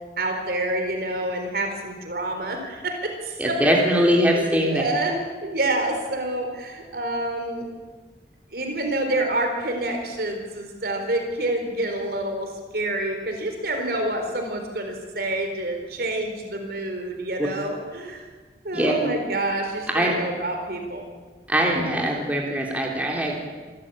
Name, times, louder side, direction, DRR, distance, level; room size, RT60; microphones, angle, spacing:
voice 1, 0.2-3.8 4.3-7.7 8.5-18.2 18.6-21.1, right 1 dB, 60° right, 4 dB, 4.2 m, -28 dB
voice 2, 3.4-4.8 17.4-17.5 18.7-18.9 19.9-20.1 21.5-23.4, equal, 10° right, -1 dB, 3.4 m, -21 dB
26.5 x 13.5 x 8.7 m, 1.4 s
head